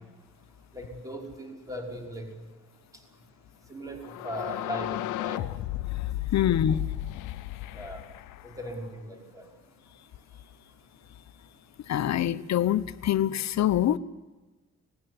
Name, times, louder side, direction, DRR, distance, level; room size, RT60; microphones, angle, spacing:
voice 1, 0.7-2.3 3.7-5.4 7.7-8.0 8.4-9.5, right 1 dB, 10° right, 5.4 m, -38 dB
sound 1, 4.0-8.9, left 16 dB, 85° left, 0.8 m, -34 dB
voice 2, 6.3-6.8 11.9-14.0, left 11 dB, 65° left, 1.0 m, -25 dB
19.0 x 16.0 x 9.8 m
cardioid pair, 90°, 30 cm